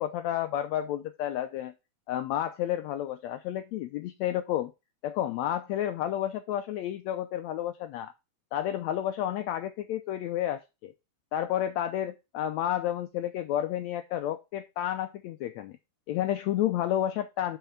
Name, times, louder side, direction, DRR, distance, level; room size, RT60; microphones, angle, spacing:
voice 1, 0.0-1.7 2.1-4.7 5.0-8.1 8.5-10.9 11.3-15.8 16.1-17.6, left 11 dB, 80° left, 9 dB, 1.6 m, -31 dB
5.8 x 5.8 x 5.5 m, 0.25 s
omnidirectional pair, 3.7 m